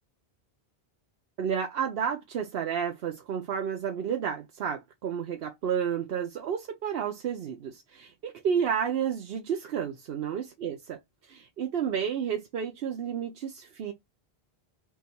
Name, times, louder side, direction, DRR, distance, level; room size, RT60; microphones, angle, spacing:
voice 1, 1.4-11.0 11.3-13.9, right 7 dB, 70° right, 0.9 m, -31 dB
3.5 x 2.3 x 4.1 m
omnidirectional pair, 1.1 m